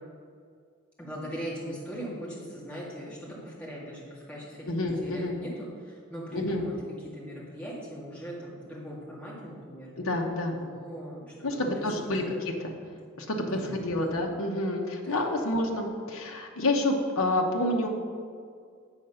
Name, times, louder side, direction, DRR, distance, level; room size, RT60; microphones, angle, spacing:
voice 1, 1.0-9.9 10.5-12.3 13.5-13.7 14.0-14.2 15.0-15.2, equal, 5° left, -6 dB, 2.0 m, -40 dB
voice 2, 4.7-5.4 6.3-6.7 10.0-10.5 11.4-12.7 13.2-17.9, left 1 dB, 80° left, 0 dB, 1.0 m, -28 dB
8.1 x 5.8 x 5.6 m, 2.1 s
head